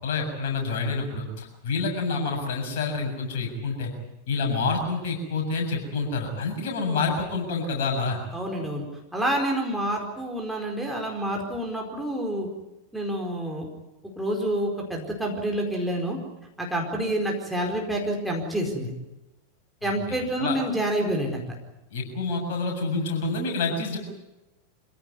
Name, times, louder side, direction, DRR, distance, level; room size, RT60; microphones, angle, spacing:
voice 1, 0.0-3.9 4.3-8.2 19.8-20.6 21.9-24.0, left 4 dB, 50° left, 1 dB, 7.4 m, -28 dB
voice 2, 8.3-8.9 9.1-12.5 12.9-13.7 14.2-16.2 16.6-18.9 19.8-21.5, right 1 dB, ahead, 0 dB, 4.6 m, -28 dB
25.5 x 16.5 x 9.6 m, 0.99 s
figure-of-eight pair, 90°, 0 cm